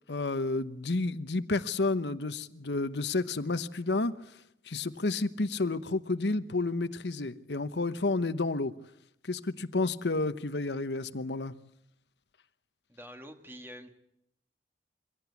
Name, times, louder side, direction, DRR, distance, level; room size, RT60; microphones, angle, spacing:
voice 1, 0.1-4.3 4.7-8.7 9.2-11.5, left 3 dB, 80° left, 1.0 m, -31 dB
voice 2, 12.9-13.9, equal, 15° right, 2.0 m, -46 dB
24.0 x 17.0 x 8.3 m
head